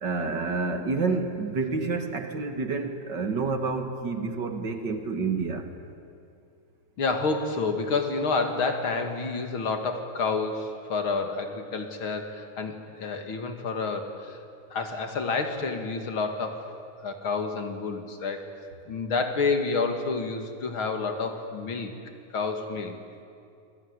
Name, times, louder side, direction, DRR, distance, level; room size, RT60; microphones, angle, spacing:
voice 1, 0.0-5.7, right 4 dB, 40° right, 6 dB, 2.2 m, -29 dB
voice 2, 7.0-14.4 14.7-16.7 17.0-18.4 18.9-21.9 22.3-23.0, left 4 dB, 45° left, 5 dB, 2.7 m, -29 dB
27.0 x 22.0 x 9.8 m, 2.5 s
omnidirectional pair, 3.5 m